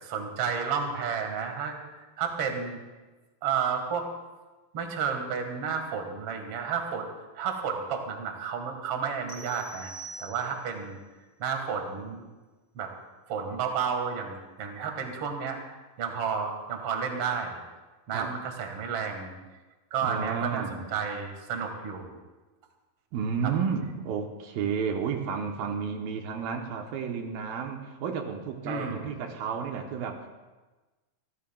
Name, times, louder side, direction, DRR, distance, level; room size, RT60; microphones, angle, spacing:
voice 1, 0.0-1.8 2.2-2.8 3.4-4.1 4.7-7.1 7.3-9.9 10.2-11.0 11.4-12.3 12.8-12.9 13.3-15.6 16.0-17.6 18.1-19.3 19.9-22.1 23.4-23.5 28.6-29.1, right 6 dB, 50° right, 4 dB, 2.0 m, -31 dB
sound 1, 9.3-10.8, right 3 dB, 5° left, 2.5 m, -44 dB
voice 2, 20.0-20.9 23.1-30.3, right 6 dB, 80° right, 3 dB, 2.6 m, -32 dB
27.5 x 14.5 x 2.3 m, 1.2 s
omnidirectional pair, 4.4 m